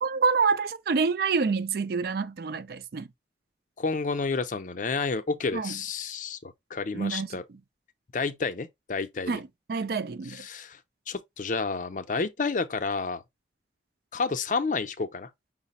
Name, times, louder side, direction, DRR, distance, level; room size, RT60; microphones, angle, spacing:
voice 1, 0.0-3.1 5.5-5.8 6.9-7.3 9.3-10.4, right 5 dB, 55° right, 0.4 m, -27 dB
voice 2, 3.8-7.4 8.1-9.4 10.3-10.8 11.1-13.2 14.1-15.3, left 4 dB, 45° left, 0.5 m, -30 dB
5.7 x 2.0 x 4.0 m
head